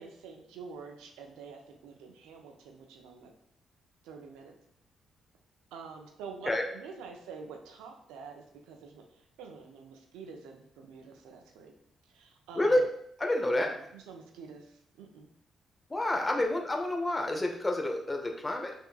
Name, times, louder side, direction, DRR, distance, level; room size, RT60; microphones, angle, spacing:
voice 1, 0.0-3.3 4.0-4.5 5.7-9.0 9.4-11.7 12.1-12.8 13.6-15.3 16.4-16.5, right 5 dB, 80° right, 3 dB, 0.5 m, -47 dB
voice 2, 13.2-13.7 15.9-18.7, left 1 dB, 25° left, 2 dB, 0.8 m, -28 dB
5.8 x 2.7 x 2.3 m, 0.70 s
hypercardioid pair, 45°, 0 cm